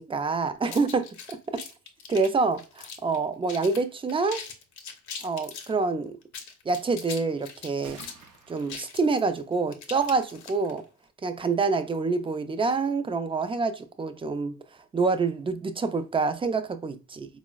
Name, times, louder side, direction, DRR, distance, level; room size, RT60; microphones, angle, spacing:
voice 1, 0.0-1.6 2.1-4.4 5.2-6.2 6.7-8.0 8.5-10.8 11.2-14.6 14.9-17.3, right 4 dB, 20° right, 0.3 m, -27 dB
sound 1, 0.6-3.2 3.5-3.8 4.1-5.7 6.2-10.8, left 6 dB, 70° left, 0.7 m, -41 dB
sound 2, 4.0-4.1 4.4-4.5 4.8-5.2 7.8-8.7, right 5 dB, 90° right, 0.6 m, -49 dB
3.8 x 2.0 x 2.3 m
cardioid pair, 90°, 30 cm